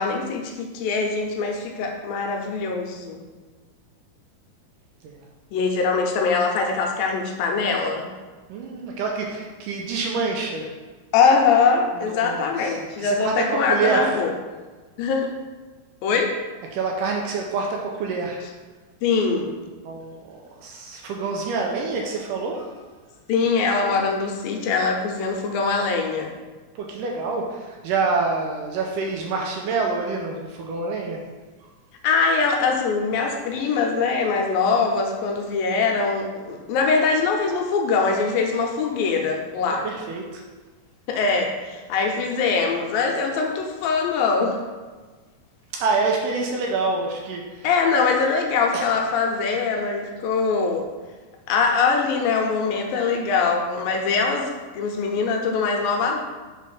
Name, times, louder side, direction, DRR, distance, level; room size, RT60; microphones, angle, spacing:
voice 1, 0.0-3.2 5.5-8.1 11.1-14.3 15.0-15.3 16.0-16.3 19.0-19.6 23.3-26.3 32.0-39.9 41.1-44.6 47.6-50.9 51.5-56.2, left 4 dB, 80° left, 2 dB, 2.4 m, -22 dB
voice 2, 8.5-10.7 12.0-14.2 16.7-18.4 19.8-22.7 26.8-31.2 31.6-31.7 39.8-40.4 45.7-47.7 48.7-48.9, right 4 dB, 80° right, 0 dB, 2.1 m, -27 dB
5.6 x 4.2 x 4.8 m, 1.3 s
omnidirectional pair, 4.2 m